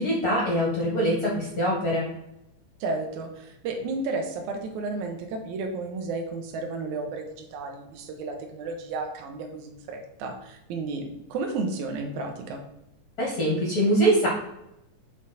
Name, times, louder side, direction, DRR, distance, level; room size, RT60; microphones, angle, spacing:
voice 1, 0.0-2.0 13.2-14.3, right 1 dB, 45° left, -4 dB, 1.2 m, -23 dB
voice 2, 2.8-12.6, right 3 dB, 75° right, 3 dB, 2.2 m, -32 dB
6.2 x 4.3 x 4.0 m, 0.84 s
omnidirectional pair, 3.7 m